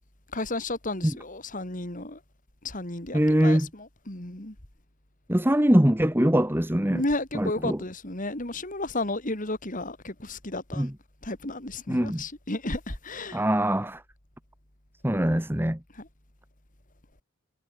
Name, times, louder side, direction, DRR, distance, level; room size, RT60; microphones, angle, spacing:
voice 1, 0.3-2.2 2.6-4.5 6.9-10.9 11.2-13.4 16.0-16.1, left 2 dB, 35° left, 3.1 m, -33 dB
voice 2, 3.1-3.7 5.3-7.0 7.3-7.8 10.8-10.9 11.9-12.2 13.3-14.0 15.0-15.8, equal, 10° right, 1.3 m, -22 dB
head